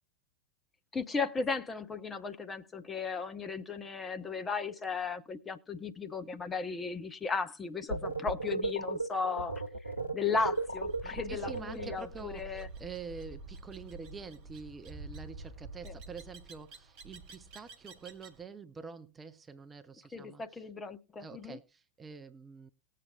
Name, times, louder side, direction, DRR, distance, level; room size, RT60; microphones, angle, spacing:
voice 1, 0.9-9.6 10.1-12.7 15.8-15.9 20.1-21.6, left 4 dB, 15° left, 0.9 m, -36 dB
sound 1, 7.9-12.3, right 2 dB, 85° right, 0.9 m, -35 dB
sound 2, 10.4-18.4, right 3 dB, 40° right, 1.5 m, -48 dB
voice 2, 11.3-20.7 21.2-22.7, right 5 dB, 15° right, 0.6 m, -47 dB
19.0 x 7.6 x 2.3 m
figure-of-eight pair, 90°, 0 cm